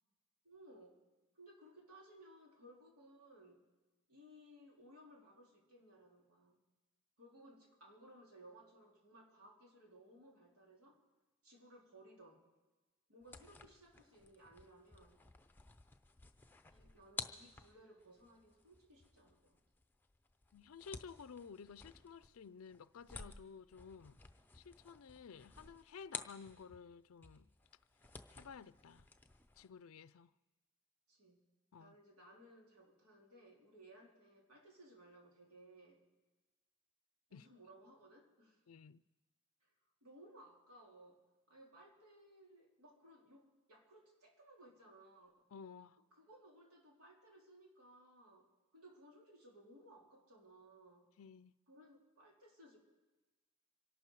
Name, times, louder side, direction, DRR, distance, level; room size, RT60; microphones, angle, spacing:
voice 1, 0.4-1.0 1.3-3.6 4.1-6.6 7.2-11.0 11.4-12.5 13.1-15.2 16.7-19.6 31.1-31.5 31.8-36.0 37.3-38.6 39.6-39.7 40.0-41.2 41.5-45.5 46.1-48.5 48.7-51.1 51.7-52.8, right 1 dB, 85° right, 3.5 m, -61 dB
sound 1, 13.2-26.9 27.2-29.7, left 4 dB, 10° left, 0.6 m, -54 dB
voice 2, 20.5-24.2 24.5-27.5 28.3-29.1 29.6-30.3 31.7-32.0 37.3-37.5 38.7-39.0 45.5-46.0 51.2-51.5, left 6 dB, 70° left, 0.4 m, -54 dB
25.5 x 12.0 x 4.7 m
head